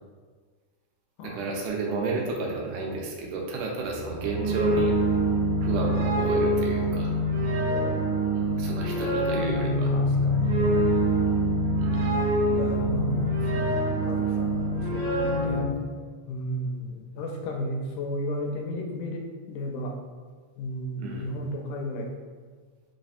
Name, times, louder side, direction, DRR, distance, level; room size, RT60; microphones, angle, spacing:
voice 1, 1.2-4.9 5.6-7.1 8.3-10.0 11.8-12.2 21.0-21.3, right 3 dB, 90° right, -1 dB, 2.2 m, -32 dB
sound 1, 3.9-15.6, right 1 dB, 70° right, 1.4 m, -25 dB
voice 2, 7.6-8.2 9.9-11.1 12.5-15.7 16.3-20.0 20.6-22.1, equal, 85° left, 2 dB, 2.1 m, -34 dB
4.8 x 3.2 x 2.6 m, 1.5 s
omnidirectional pair, 3.5 m